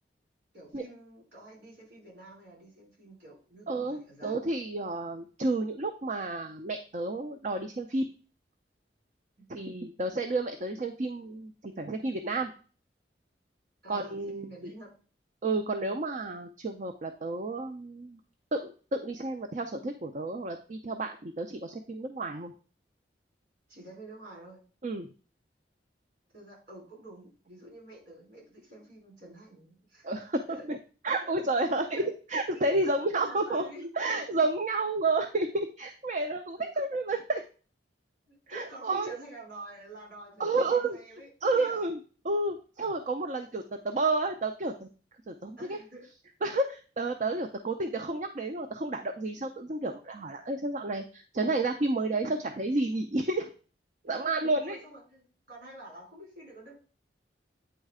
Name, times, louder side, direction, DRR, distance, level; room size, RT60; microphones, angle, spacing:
voice 1, 0.5-4.4 9.4-9.5 13.8-14.9 23.7-24.6 26.3-30.1 30.5-30.7 31.2-31.3 31.9-32.1 32.8-34.2 36.7-36.8 38.3-41.8 45.6-46.1 54.1-56.7, right 1 dB, 65° right, -3 dB, 4.3 m, -48 dB
voice 2, 3.7-8.1 9.5-12.5 13.9-14.5 15.4-18.2 18.5-22.5 24.8-25.1 30.0-30.8 31.0-32.0 32.3-33.6 34.0-37.4 38.5-39.2 40.4-41.0 41.4-42.0 42.2-44.9 45.3-45.8 46.4-53.5 54.0-54.8, right 2 dB, 45° right, 6 dB, 0.5 m, -31 dB
8.9 x 3.2 x 4.9 m, 0.37 s
head